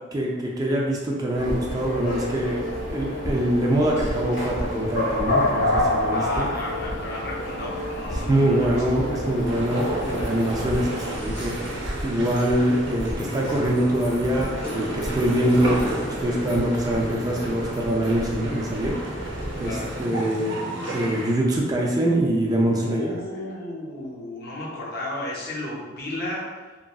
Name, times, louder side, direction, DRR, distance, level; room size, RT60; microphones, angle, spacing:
voice 1, 0.1-6.5 8.1-11.6 12.0-20.6 20.9-23.1, right 1 dB, 20° right, -2 dB, 0.3 m, -24 dB
sound 1, 1.3-20.0, left 1 dB, 75° left, 0.9 m, -30 dB
voice 2, 6.1-8.8 19.6-20.3 22.8-26.5, left 1 dB, 55° left, -5 dB, 0.7 m, -33 dB
sound 2, 9.4-21.3, right 2 dB, 75° right, 0.6 m, -33 dB
sound 3, 11.6-20.8, equal, 25° left, 0.7 m, -41 dB
2.9 x 2.5 x 2.3 m, 1.3 s
head